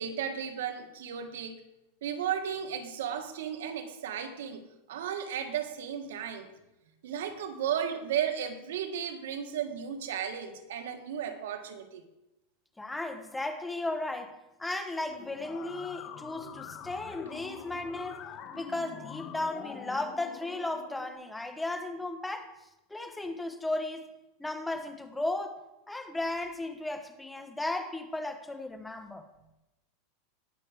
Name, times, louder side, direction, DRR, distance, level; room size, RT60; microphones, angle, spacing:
voice 1, 0.0-1.6 2.0-6.5 7.0-12.0, right 8 dB, 90° right, 1.6 m, -34 dB
voice 2, 12.8-18.2 18.5-22.5 22.9-24.1 24.4-25.6 25.9-29.3, left 2 dB, 5° left, 1.0 m, -35 dB
sound 1, 15.2-21.1, left 8 dB, 30° left, 1.2 m, -45 dB
18.5 x 6.2 x 5.0 m
supercardioid pair, 160°, 0 cm